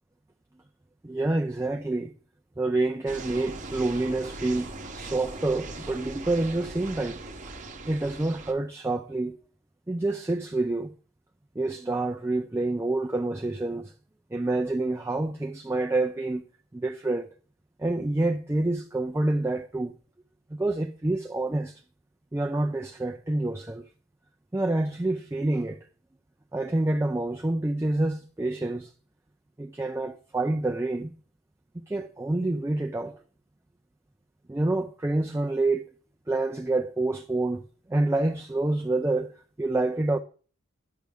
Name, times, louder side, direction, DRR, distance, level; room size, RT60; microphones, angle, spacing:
voice 1, 1.0-2.1 2.6-7.2 7.8-9.3 9.9-10.9 11.6-13.9 14.3-16.4 16.7-17.3 17.8-19.9 20.5-21.8 22.3-23.8 24.5-25.9 26.5-28.9 29.6-31.1 31.9-33.2 34.5-35.9 36.3-39.3 39.6-40.2, right 2 dB, 10° right, 0.3 m, -27 dB
sound 1, 3.1-8.5, right 2 dB, 35° right, 0.8 m, -40 dB
10.5 x 6.3 x 3.5 m
head